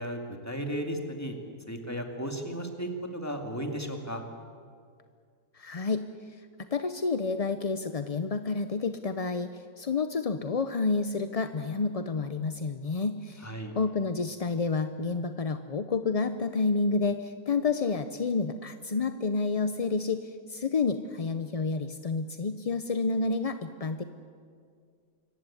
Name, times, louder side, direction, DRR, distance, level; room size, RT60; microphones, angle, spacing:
voice 1, 0.0-1.4 1.7-4.2 13.4-13.7, equal, 10° left, 3 dB, 2.2 m, -35 dB
voice 2, 5.5-6.1 6.7-13.5 13.8-24.0, left 4 dB, 40° left, 9 dB, 0.5 m, -29 dB
25.5 x 15.0 x 9.9 m, 2.2 s
omnidirectional pair, 1.6 m